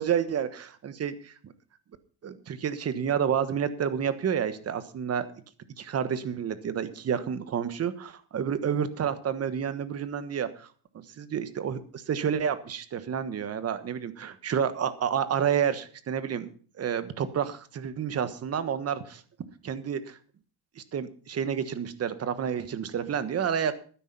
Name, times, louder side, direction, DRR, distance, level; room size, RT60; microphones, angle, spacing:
voice 1, 0.0-1.5 2.2-5.3 5.8-10.7 11.2-16.5 16.8-19.2 19.6-20.2 20.8-23.8, right 8 dB, 30° right, 12 dB, 1.3 m, -29 dB
12.0 x 10.5 x 5.4 m, 0.42 s
supercardioid pair, 120°, 49 cm